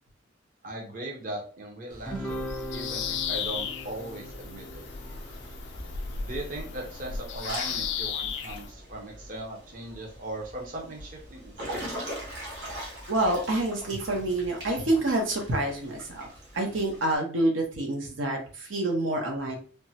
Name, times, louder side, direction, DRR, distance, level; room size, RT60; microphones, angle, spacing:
voice 1, 0.6-4.8 6.2-11.9, right 1 dB, 45° right, 0 dB, 0.6 m, -39 dB
Water / Splash splatter / Drip, 1.9-17.2, equal, 65° right, 1.2 m, -43 dB
Guitar, 2.0-6.7, equal, 5° left, 0.4 m, -40 dB
Bird vocalization bird call bird song, 2.3-8.7, left 7 dB, 65° left, 0.3 m, -35 dB
voice 2, 13.1-16.3 16.5-19.6, right 1 dB, 90° right, 1 dB, 0.8 m, -27 dB
3.4 x 2.0 x 2.8 m, 0.39 s
head